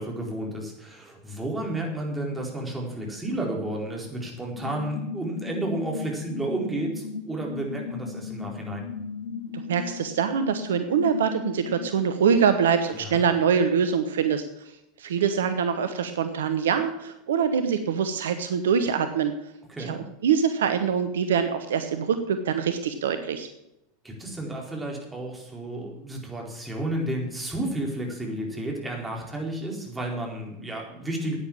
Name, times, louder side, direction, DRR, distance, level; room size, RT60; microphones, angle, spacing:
voice 1, 0.0-8.9 12.9-13.2 19.7-20.0 24.0-31.4, right 1 dB, 10° right, -1 dB, 4.3 m, -32 dB
sound 1, 4.6-11.9, left 5 dB, 75° left, 1.8 m, -36 dB
voice 2, 9.5-14.4 15.0-19.3 19.8-20.0 20.2-23.5, right 7 dB, 70° right, 9 dB, 1.0 m, -24 dB
10.5 x 9.4 x 7.3 m, 0.86 s
figure-of-eight pair, 85°, 0 cm